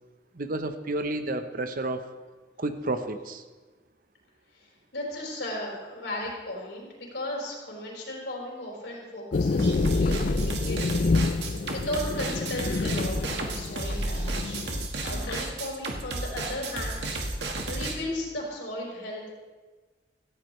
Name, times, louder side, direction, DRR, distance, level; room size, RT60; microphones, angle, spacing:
voice 1, 0.3-2.0 2.6-3.4, right 2 dB, 55° right, 9 dB, 1.0 m, -31 dB
voice 2, 4.5-11.3 11.7-14.6 15.0-17.3 17.7-19.3, left 1 dB, 90° left, -2 dB, 4.7 m, -36 dB
sound 1, 9.3-14.9, left 3 dB, 50° left, 0.4 m, -28 dB
sound 2, 9.6-17.9, right 2 dB, 70° right, 1.7 m, -32 dB
sound 3, 12.0-13.5 14.7-17.7, left 3 dB, 65° left, 1.8 m, -46 dB
17.5 x 15.0 x 3.3 m, 1.3 s
head